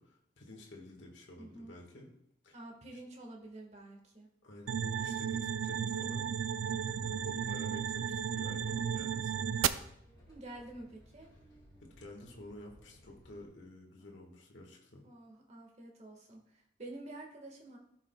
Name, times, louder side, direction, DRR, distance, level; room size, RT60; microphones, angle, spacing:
voice 1, 0.0-2.1 2.4-2.6 4.4-6.3 6.6-9.5 11.8-15.0, left 1 dB, 70° left, 0 dB, 1.6 m, -51 dB
voice 2, 1.4-1.7 2.5-4.3 10.3-11.3 15.0-17.8, right 2 dB, 35° right, 0 dB, 1.6 m, -49 dB
sound 1, 4.7-9.7, right 8 dB, 90° right, 0.4 m, -34 dB
sound 2, 6.8-13.4, equal, 20° left, 2.0 m, -60 dB
14.0 x 6.1 x 2.3 m, 0.74 s
head